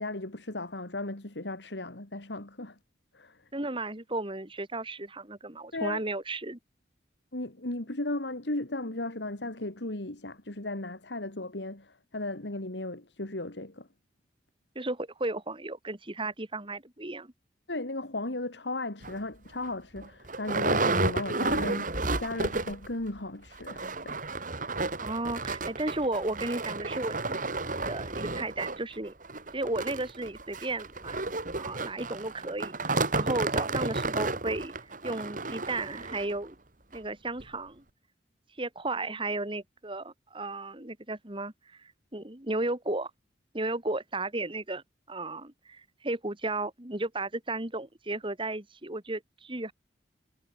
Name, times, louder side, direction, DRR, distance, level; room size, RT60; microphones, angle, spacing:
voice 1, 0.0-2.8 3.1-3.4 5.7-6.0 7.3-13.9 17.7-24.2, left 2 dB, 85° left, 2.7 m, -36 dB
voice 2, 3.5-6.6 14.7-17.3 25.0-27.4 27.7-29.1 29.5-31.2 31.5-34.7 35.0-36.5 36.9-37.8 38.6-43.1 43.5-49.7, right 2 dB, 30° right, 2.8 m, -34 dB
sound 1, 19.0-19.2 19.7-19.8 20.0-22.9 23.2-23.3 23.6-36.4 36.9-37.0 37.4-37.5, right 3 dB, 50° right, 3.7 m, -32 dB
head